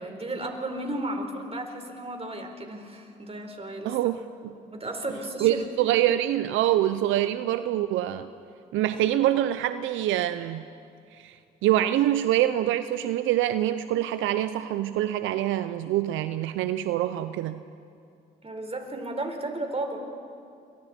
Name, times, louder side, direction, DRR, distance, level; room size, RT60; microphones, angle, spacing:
voice 1, 0.0-4.0 4.5-6.0 18.4-20.0, right 1 dB, 30° right, 4 dB, 4.3 m, -34 dB
voice 2, 3.8-4.5 5.4-8.3 8.7-10.6 11.2-11.4 11.6-17.6, right 13 dB, 80° right, 11 dB, 0.6 m, -25 dB
27.5 x 23.0 x 4.4 m, 2.4 s
supercardioid pair, 55°, 20 cm